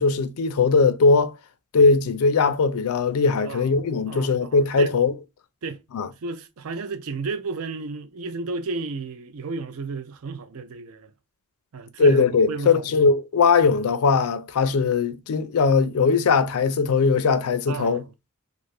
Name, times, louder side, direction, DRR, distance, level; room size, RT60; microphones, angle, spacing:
voice 1, 0.0-1.3 1.7-5.1 5.9-6.1 12.0-18.0, left 4 dB, 75° left, 0.4 m, -20 dB
voice 2, 3.4-3.8 4.1-4.9 5.6-5.8 6.2-11.1 11.7-13.0 17.7-18.1, right 4 dB, 70° right, 0.5 m, -33 dB
2.5 x 2.4 x 3.2 m
head